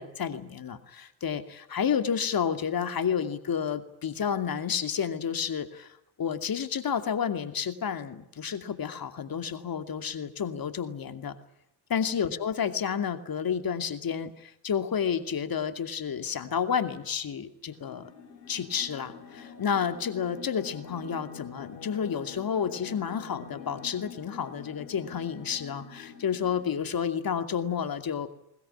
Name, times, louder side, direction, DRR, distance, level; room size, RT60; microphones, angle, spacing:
voice 1, 0.0-11.3 11.9-18.1 18.5-28.3, left 7 dB, 45° left, 9 dB, 2.6 m, -30 dB
sound 1, 17.7-26.9, left 6 dB, 85° left, 4.5 m, -46 dB
21.0 x 21.0 x 9.9 m, 0.78 s
hypercardioid pair, 55°, 49 cm